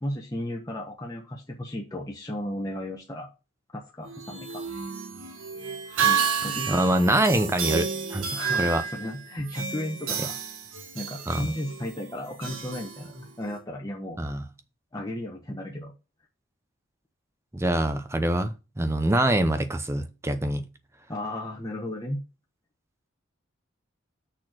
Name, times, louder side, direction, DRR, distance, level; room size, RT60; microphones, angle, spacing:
voice 1, 0.0-3.3 3.7-4.6 6.0-7.2 8.3-10.4 10.9-14.2 14.9-15.9 21.1-22.2, left 1 dB, 15° left, 0.9 m, -34 dB
sound 1, 4.0-13.6, right 7 dB, 75° right, 1.5 m, -31 dB
voice 2, 6.7-8.3 8.6-8.8 11.3-11.4 14.2-14.4 17.5-20.6, right 1 dB, 15° right, 0.6 m, -24 dB
6.4 x 4.3 x 6.1 m
head